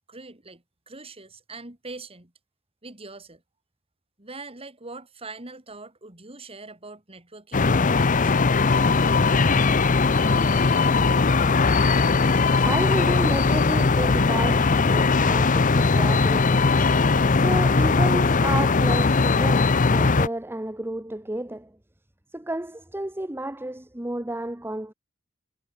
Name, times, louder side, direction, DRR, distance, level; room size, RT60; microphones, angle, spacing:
voice 1, 0.1-2.3 2.8-3.4 4.2-8.3, right 3 dB, 30° right, 3.5 m, -42 dB
sound 1, 7.5-20.3, left 4 dB, 40° left, 0.7 m, -20 dB
voice 2, 12.2-16.7 17.3-21.7 22.3-24.9, right 1 dB, 10° right, 1.0 m, -31 dB
head